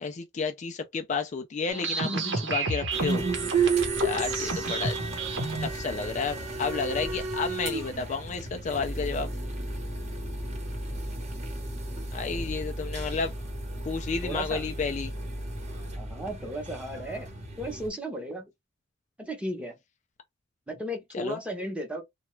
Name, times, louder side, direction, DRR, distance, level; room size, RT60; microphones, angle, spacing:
voice 1, 0.0-3.3 4.0-5.0 5.6-9.3 12.1-13.3 13.8-15.1 21.1-21.4, left 5 dB, 40° left, 0.3 m, -31 dB
sound 1, 1.7-5.7, right 4 dB, 65° right, 0.9 m, -28 dB
sound 2, 2.9-17.9, right 1 dB, 35° right, 1.0 m, -35 dB
voice 2, 14.2-14.6 16.0-17.3 17.6-18.5 19.2-19.7 20.7-22.0, right 1 dB, 5° right, 0.8 m, -35 dB
2.8 x 2.3 x 3.1 m
head